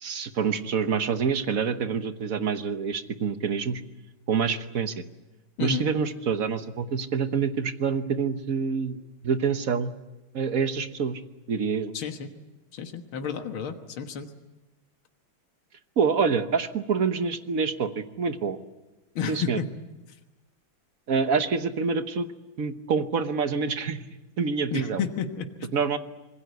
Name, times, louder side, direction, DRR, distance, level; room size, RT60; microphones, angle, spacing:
voice 1, 0.0-3.8 4.3-4.9 5.6-9.9 10.3-11.2 11.5-11.9 16.0-18.6 19.3-19.6 21.1-22.3 22.6-24.0 24.4-25.0 25.7-26.0, right 5 dB, 50° right, 10 dB, 1.3 m, -26 dB
voice 2, 11.9-12.3 12.7-14.3 19.2-19.7 24.7-25.7, left 6 dB, 85° left, 6 dB, 2.2 m, -31 dB
26.0 x 21.5 x 8.1 m, 1.1 s
omnidirectional pair, 2.2 m